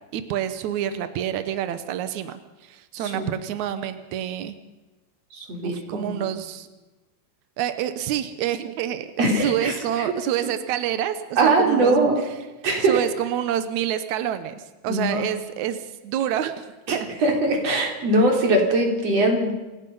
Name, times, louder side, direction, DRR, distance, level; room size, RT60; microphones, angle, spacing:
voice 1, 0.1-4.5 5.6-6.7 7.6-12.3 12.8-17.4, right 10 dB, 85° right, 10 dB, 1.6 m, -28 dB
voice 2, 3.0-3.3 5.3-6.2 9.2-9.7 11.4-12.2 12.6-13.0 14.9-15.2 16.9-17.0 17.2-19.5, right 2 dB, 40° right, 1 dB, 4.5 m, -21 dB
27.5 x 17.5 x 5.6 m, 1.1 s
omnidirectional pair, 4.9 m